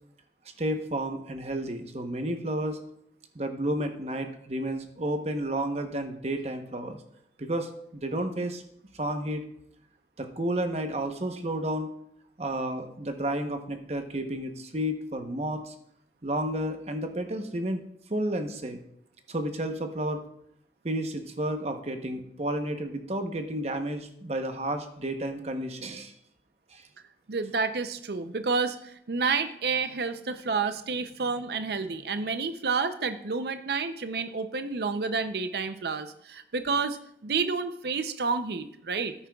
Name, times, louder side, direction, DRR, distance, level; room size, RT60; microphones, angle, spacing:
voice 1, 0.6-2.8 3.3-7.0 7.4-8.6 8.9-9.4 10.2-11.9 12.4-15.7 16.2-17.8 18.1-18.8 19.3-20.2 20.8-26.1 26.7-26.8, right 1 dB, 35° right, 6 dB, 0.9 m, -31 dB
voice 2, 27.3-39.1, right 4 dB, 60° right, 10 dB, 0.6 m, -30 dB
13.5 x 9.8 x 2.3 m, 0.71 s
head